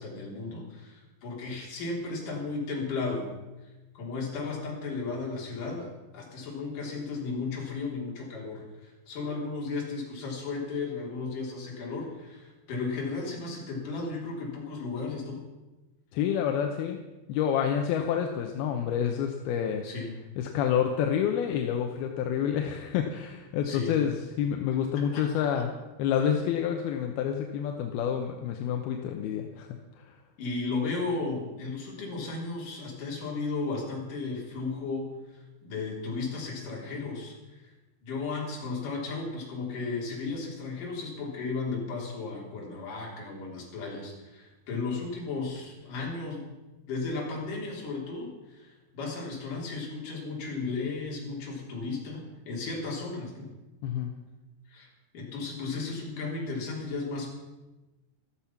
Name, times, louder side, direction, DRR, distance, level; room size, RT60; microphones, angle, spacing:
voice 1, 0.0-3.3 3.9-15.4 19.8-20.1 23.6-24.0 24.9-25.7 30.4-37.7 38.0-46.5 46.9-53.5 54.7-54.9 55.1-57.3, left 3 dB, 50° left, -2 dB, 4.8 m, -35 dB
voice 2, 16.1-17.0 17.3-19.9 20.4-25.7 26.0-29.7 30.0-30.2 53.8-54.1, left 8 dB, 75° left, 4 dB, 2.6 m, -28 dB
14.0 x 14.0 x 5.9 m, 1.1 s
omnidirectional pair, 5.1 m